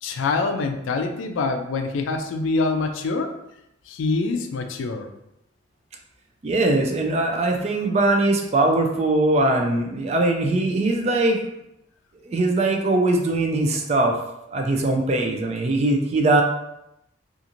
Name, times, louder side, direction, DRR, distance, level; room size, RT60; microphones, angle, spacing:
voice 1, 0.0-3.3 3.9-5.1, left 3 dB, 85° left, 6 dB, 0.4 m, -25 dB
voice 2, 6.4-11.4 12.3-14.2 14.5-16.4, right 2 dB, 35° right, 2 dB, 0.3 m, -21 dB
2.5 x 2.4 x 2.9 m, 0.83 s
head